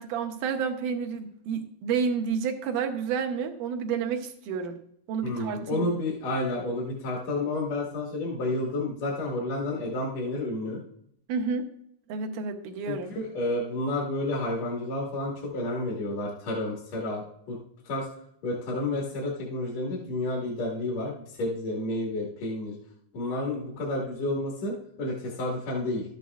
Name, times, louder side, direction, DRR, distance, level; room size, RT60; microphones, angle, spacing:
voice 1, 0.0-4.8 5.1-5.9 11.3-11.7 12.1-13.1, right 6 dB, 75° right, 4 dB, 2.2 m, -30 dB
voice 2, 5.2-10.8 12.9-17.6 17.8-18.1 18.4-22.7 23.1-26.0, left 2 dB, 55° left, -3 dB, 2.7 m, -30 dB
12.5 x 9.3 x 2.4 m, 0.69 s
omnidirectional pair, 4.0 m